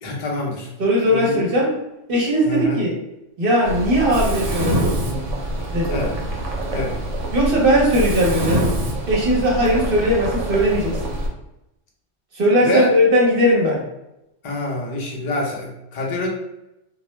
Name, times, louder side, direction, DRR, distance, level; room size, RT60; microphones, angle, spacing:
voice 1, 0.0-0.7 1.0-1.3 2.4-2.8 5.9-6.1 6.7-7.0 12.6-12.9 14.4-16.3, left 2 dB, 45° left, -1 dB, 0.5 m, -26 dB
voice 2, 0.8-1.8 2.1-2.9 3.4-5.3 5.7-6.0 7.3-8.7 9.1-11.2 12.3-13.8, equal, 55° right, -3 dB, 0.9 m, -19 dB
Mechanisms, 3.7-11.3, right 1 dB, 80° right, 0.9 m, -25 dB
2.3 x 2.1 x 3.0 m, 0.90 s
omnidirectional pair, 1.3 m